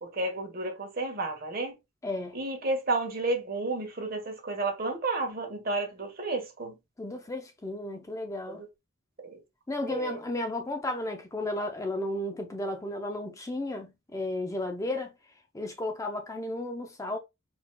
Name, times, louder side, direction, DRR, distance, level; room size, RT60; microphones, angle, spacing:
voice 1, 0.0-1.7 2.3-6.7 8.5-8.7 9.2-9.4 9.9-10.2, right 2 dB, 45° right, 1.2 m, -32 dB
voice 2, 2.0-2.4 7.0-8.6 9.7-15.1 15.5-17.2, left 1 dB, 15° left, 0.4 m, -33 dB
4.3 x 4.1 x 2.2 m
head